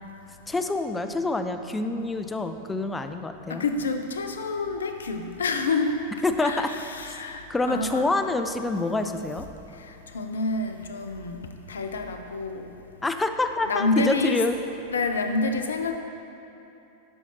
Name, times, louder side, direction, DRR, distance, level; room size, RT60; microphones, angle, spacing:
voice 1, 0.5-3.6 6.2-6.7 7.5-9.5 13.0-14.6, left 2 dB, 10° left, 8 dB, 0.4 m, -26 dB
voice 2, 3.5-5.9 6.4-6.6 6.9-8.1 9.8-12.7 13.7-14.4 14.9-16.0, left 3 dB, 70° left, 6 dB, 0.5 m, -28 dB
10.0 x 5.5 x 2.9 m, 2.9 s
figure-of-eight pair, 90°, 0 cm